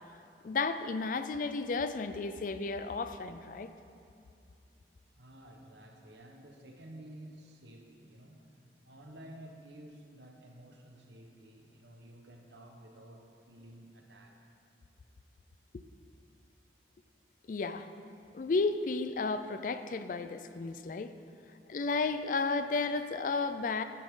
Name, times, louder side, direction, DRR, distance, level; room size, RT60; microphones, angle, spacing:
voice 1, 0.4-3.7 15.7-15.8 17.5-17.9 18.3-21.1 21.7-23.8, left 4 dB, 50° left, 11 dB, 0.4 m, -33 dB
voice 2, 5.2-8.5 8.8-14.4, right 1 dB, 80° right, 2 dB, 1.2 m, -52 dB
10.5 x 10.0 x 3.8 m, 2.5 s
head